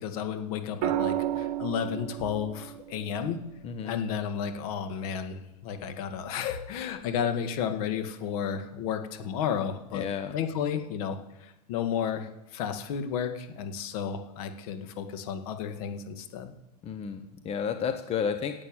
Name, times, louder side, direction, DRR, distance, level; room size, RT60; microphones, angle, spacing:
voice 1, 0.0-3.4 3.8-10.1 10.3-16.5, left 8 dB, 65° left, 7 dB, 1.9 m, -32 dB
sound 1, 0.8-4.9 6.6-7.0, right 12 dB, 55° right, 1.5 m, -34 dB
voice 2, 3.6-4.0 9.9-10.3 16.8-18.5, left 7 dB, 30° left, 7 dB, 1.1 m, -31 dB
11.0 x 8.2 x 9.0 m, 0.91 s
supercardioid pair, 125°, 20 cm